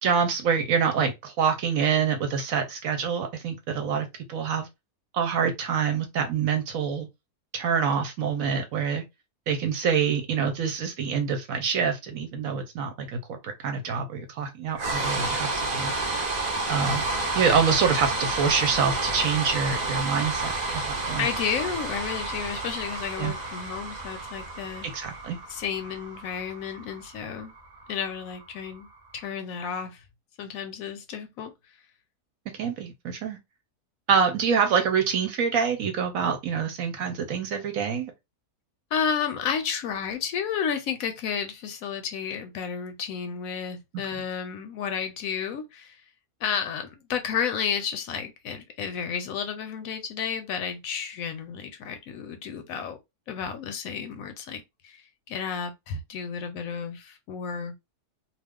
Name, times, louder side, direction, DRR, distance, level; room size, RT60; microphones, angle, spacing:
voice 1, 0.0-4.7 5.1-7.1 7.5-9.0 9.5-13.4 13.6-15.9 16.7-17.0 17.3-20.5 20.8-21.3 23.2-23.3 24.8-25.4 32.6-33.4 34.1-38.1, right 6 dB, 70° right, 1.0 m, -26 dB
sound 1, 14.7-28.9, right 2 dB, 45° right, 0.5 m, -30 dB
voice 2, 21.2-24.9 25.5-27.5 27.9-28.9 29.1-30.0 30.4-31.5 38.9-46.0 46.4-53.0 53.3-57.8, left 7 dB, 70° left, 0.9 m, -32 dB
2.4 x 2.4 x 3.4 m
omnidirectional pair, 1.6 m